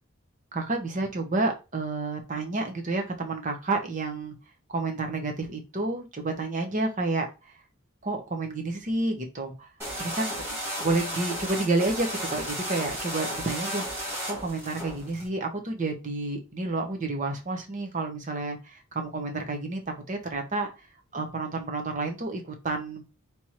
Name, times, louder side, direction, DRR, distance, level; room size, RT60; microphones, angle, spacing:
voice 1, 0.5-4.3 4.7-7.3 8.0-9.7 10.2-10.3 10.8-20.7 21.1-23.0, right 2 dB, 35° right, 4 dB, 0.9 m, -30 dB
sound 1, 9.8-15.3, equal, 10° right, 2.1 m, -34 dB
3.5 x 3.0 x 4.3 m, 0.28 s
head